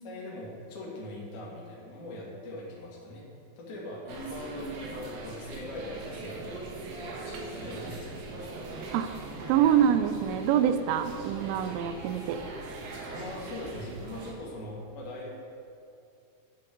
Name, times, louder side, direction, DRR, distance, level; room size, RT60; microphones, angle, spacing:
voice 1, 0.0-3.2 3.6-8.6 13.0-15.3, left 1 dB, 55° left, -4 dB, 2.5 m, -41 dB
sound 1, 4.1-14.3, right 2 dB, 70° right, 2.8 m, -41 dB
voice 2, 9.4-12.4, right 9 dB, 90° right, 10 dB, 3.1 m, -25 dB
13.0 x 7.5 x 3.6 m, 2.6 s
omnidirectional pair, 5.6 m